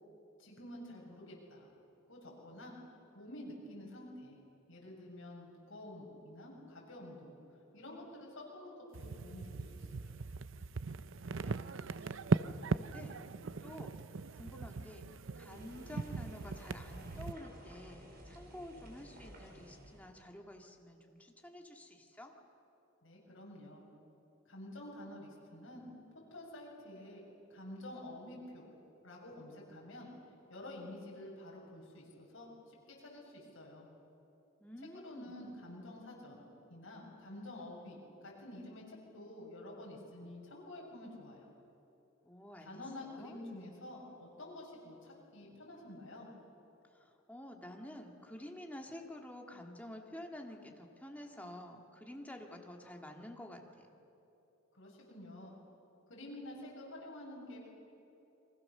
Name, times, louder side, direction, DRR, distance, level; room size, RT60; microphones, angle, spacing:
voice 1, 0.4-1.7 2.1-2.7 3.1-4.4 4.7-7.3 7.7-10.1 23.0-23.9 24.5-25.9 26.3-27.2 27.5-28.7 29.0-30.1 30.5-33.9 35.0-41.5 42.7-46.3 54.7-55.5 56.1-57.7, left 1 dB, 65° left, -2 dB, 7.2 m, -49 dB
sound 1, 8.9-17.3, right 4 dB, 65° right, 0.6 m, -39 dB
voice 2, 11.2-11.6 12.0-12.2 12.6-13.2 13.6-13.9 14.4-15.1 15.4-22.3 34.6-35.3 42.2-43.4 46.9-53.9, left 1 dB, 5° left, 1 dB, 2.1 m, -50 dB
sound 2, 15.5-20.1, equal, 45° right, 4.3 m, -54 dB
30.0 x 23.5 x 6.8 m, 2.9 s
head